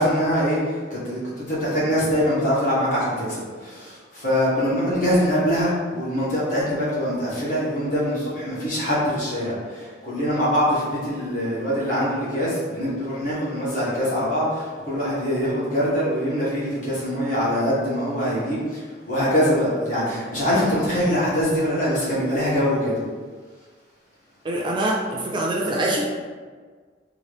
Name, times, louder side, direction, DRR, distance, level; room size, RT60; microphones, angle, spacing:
voice 1, 0.0-23.0, equal, 45° left, -8 dB, 1.2 m, -23 dB
voice 2, 24.4-26.2, right 1 dB, 25° right, -3 dB, 0.4 m, -24 dB
3.0 x 2.5 x 3.2 m, 1.5 s
head